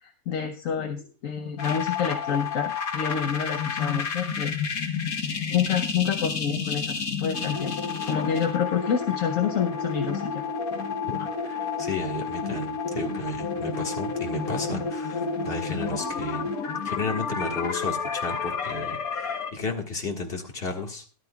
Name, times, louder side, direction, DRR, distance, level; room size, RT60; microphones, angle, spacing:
voice 1, 0.0-4.9 5.3-10.4, left 7 dB, 70° left, 4 dB, 1.2 m, -28 dB
sound 1, 1.6-19.5, left 5 dB, 90° left, 1.7 m, -30 dB
voice 2, 11.1-16.5 16.8-21.0, left 2 dB, 45° left, 2 dB, 1.9 m, -33 dB
13.5 x 12.0 x 2.3 m, 0.37 s
omnidirectional pair, 1.5 m